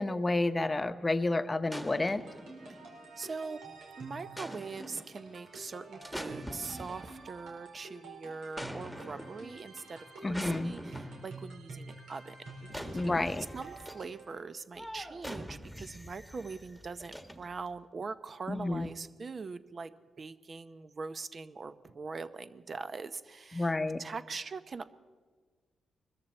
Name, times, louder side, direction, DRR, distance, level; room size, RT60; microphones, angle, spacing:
voice 1, 0.0-2.2 10.2-10.7 12.9-13.5 18.5-18.9 23.5-24.0, left 2 dB, 25° left, 11 dB, 0.8 m, -30 dB
Artillery Shots, 1.7-3.1 4.4-5.2 6.0-7.4 8.6-9.5 10.3-11.4 12.7-14.1 14.8-17.7 18.5-18.9, equal, 5° right, 1.6 m, -44 dB
sound 1, 2.1-14.4, right 3 dB, 90° right, 4.4 m, -49 dB
voice 2, 3.2-3.6 4.0-12.4 12.6-13.1 13.5-19.9 20.2-24.9, right 4 dB, 45° right, 12 dB, 0.8 m, -42 dB
22.0 x 13.5 x 4.3 m, 1.5 s
cardioid pair, 75°, 0 cm